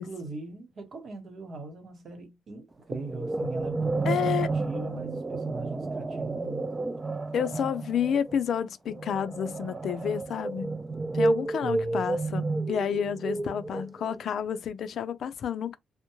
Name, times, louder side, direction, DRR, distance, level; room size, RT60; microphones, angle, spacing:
voice 1, 0.0-4.3 4.6-6.6 11.6-12.0, right 2 dB, 55° right, 1.1 m, -40 dB
sound 1, 2.9-14.2, right 2 dB, 20° right, 0.4 m, -31 dB
voice 2, 4.0-4.5 7.3-10.8 11.1-15.8, left 8 dB, 65° left, 0.4 m, -30 dB
2.2 x 2.0 x 3.0 m
cardioid pair, 90°, 0 cm